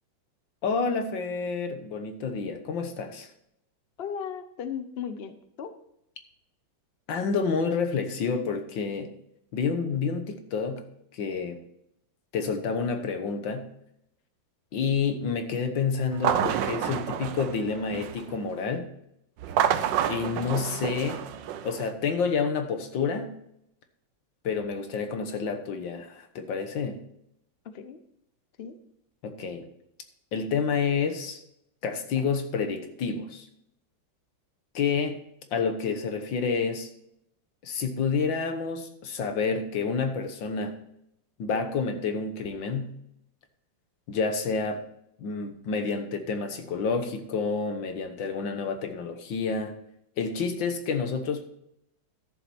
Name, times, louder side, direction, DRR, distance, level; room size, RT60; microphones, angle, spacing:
voice 1, 0.6-3.3 7.1-9.1 9.5-11.6 12.3-13.7 14.7-18.9 20.1-21.2 21.6-23.4 24.4-27.0 29.2-29.7 30.3-31.4 31.8-33.5 34.8-35.2 35.5-36.9 37.6-40.8 41.4-43.0 44.1-44.8 45.2-49.8 50.2-51.5, left 5 dB, 75° left, 7 dB, 1.9 m, -29 dB
voice 2, 4.0-5.7 20.4-20.9 27.6-28.0 28.6-28.8, left 7 dB, 50° left, 9 dB, 0.7 m, -37 dB
sound 1, 16.1-18.3 19.4-21.9, right 9 dB, 75° right, 1.4 m, -29 dB
13.0 x 7.3 x 4.3 m, 0.77 s
omnidirectional pair, 2.1 m